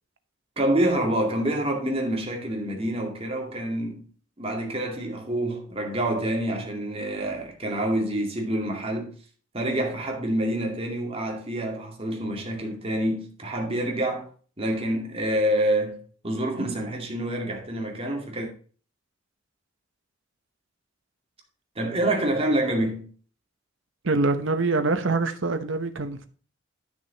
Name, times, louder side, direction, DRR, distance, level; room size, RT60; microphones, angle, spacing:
voice 1, 0.6-4.0 4.4-9.1 9.5-14.3 14.6-16.0 16.2-18.5 21.8-23.1, right 1 dB, 30° right, 2.3 m, -27 dB
voice 2, 24.0-26.3, right 3 dB, 85° right, 1.0 m, -24 dB
10.5 x 6.2 x 4.1 m
head